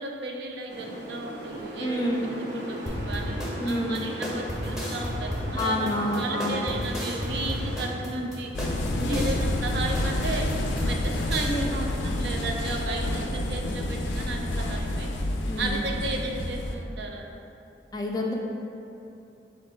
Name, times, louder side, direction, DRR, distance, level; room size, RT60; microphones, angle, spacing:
voice 1, 0.0-8.5 9.1-10.5 10.9-15.1 15.6-17.2, right 2 dB, 65° right, 2 dB, 0.4 m, -34 dB
sound 1, 0.7-7.8, right 1 dB, 80° right, 0.8 m, -38 dB
voice 2, 1.8-2.2 3.6-4.0 5.6-6.6 9.0-9.3 11.5-11.7 15.5-15.9 17.9-18.3, left 1 dB, 20° left, 0 dB, 0.3 m, -28 dB
sound 2, 2.9-11.5, equal, ahead, 0.7 m, -33 dB
sound 3, 8.5-16.8, left 1 dB, 90° left, 0.4 m, -29 dB
4.4 x 2.5 x 4.3 m, 2.8 s
head